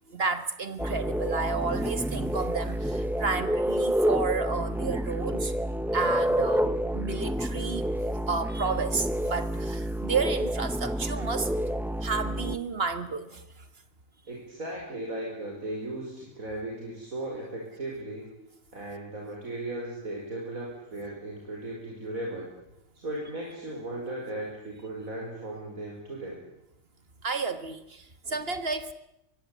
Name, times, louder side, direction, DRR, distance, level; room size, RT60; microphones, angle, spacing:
voice 1, 0.1-5.5 5.9-7.8 8.3-11.5 12.0-13.5 27.2-28.9, right 4 dB, 45° right, 11 dB, 1.8 m, -31 dB
sound 1, 0.8-12.6, equal, ahead, 0.5 m, -29 dB
voice 2, 14.3-18.3 18.7-22.5 22.9-26.4, right 1 dB, 80° right, -2 dB, 5.8 m, -36 dB
24.0 x 22.5 x 8.4 m, 0.86 s
omnidirectional pair, 1.4 m